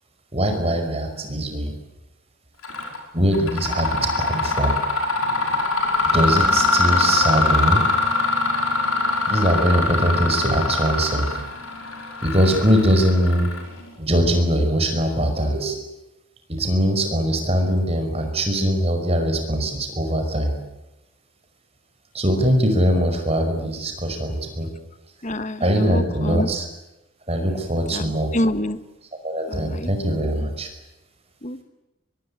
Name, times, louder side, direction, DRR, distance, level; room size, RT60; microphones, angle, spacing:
voice 1, 0.3-1.7 3.1-4.7 6.0-7.8 9.3-11.4 12.2-13.5 14.0-15.8 16.6-20.5 22.1-24.7 25.6-26.7 27.3-28.3 29.2-30.7, equal, 30° right, 5 dB, 5.3 m, -21 dB
Mechanisms, 2.6-3.0 3.3-13.9, left 3 dB, 80° left, 5.8 m, -23 dB
voice 2, 25.2-26.5 27.9-28.8 29.5-29.9 31.4-31.6, left 1 dB, 35° left, 12 dB, 1.4 m, -27 dB
24.5 x 22.5 x 10.0 m, 0.96 s
head